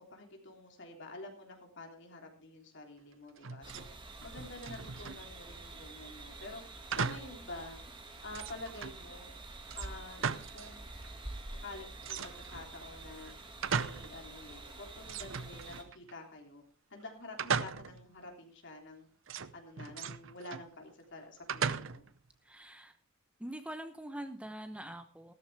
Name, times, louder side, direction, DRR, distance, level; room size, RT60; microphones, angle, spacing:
voice 1, 0.0-3.9 4.2-6.6 6.9-7.8 8.2-9.3 9.7-10.9 11.6-13.3 13.7-16.6 16.9-19.1 19.5-22.1, left 2 dB, 60° left, 2 dB, 3.3 m, -48 dB
sound 1, 3.4-3.9 4.2-5.3 6.9-7.4 7.8-7.9 8.3-9.0 9.7-10.8 11.0-11.1 12.0-12.7 13.2-14.2 14.5-14.6 15.0-16.1 17.4-18.1 19.3-20.7 21.5-22.2, right 6 dB, 65° right, 0.7 m, -37 dB
sound 2, 3.6-15.8, right 2 dB, 25° right, 2.0 m, -48 dB
voice 2, 22.4-23.0 23.4-25.3, right 1 dB, 5° right, 8 dB, 0.8 m, -44 dB
15.0 x 13.5 x 3.4 m, 0.39 s
head